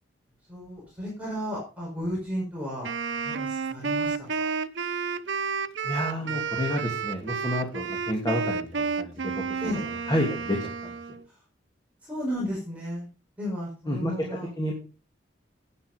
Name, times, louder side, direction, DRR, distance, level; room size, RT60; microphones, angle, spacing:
voice 1, 0.5-2.9 3.2-4.5 6.2-6.4 9.6-9.9 11.2-11.4 12.0-13.1 13.4-14.5, equal, 10° right, -5 dB, 5.1 m, -34 dB
Wind instrument woodwind instrument, 2.8-11.2, right 5 dB, 80° right, 0.7 m, -31 dB
voice 2, 5.8-9.6 10.1-10.9 13.9-14.1 14.6-14.7, equal, 20° left, -1 dB, 2.8 m, -29 dB
11.0 x 9.2 x 5.3 m, 0.35 s
head